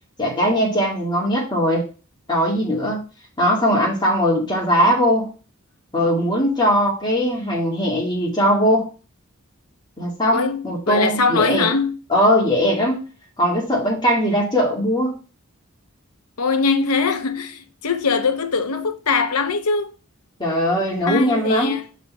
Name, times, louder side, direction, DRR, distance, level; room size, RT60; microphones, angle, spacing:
voice 1, 0.2-1.8 2.3-3.0 3.4-5.3 5.9-8.9 10.0-11.7 12.1-13.0 13.4-15.1 20.4-21.8, equal, 20° left, 2.3 m, -20 dB
voice 2, 10.3-12.0 16.4-19.9 21.1-21.9, left 4 dB, 85° left, 0.8 m, -21 dB
5.4 x 4.0 x 5.6 m
head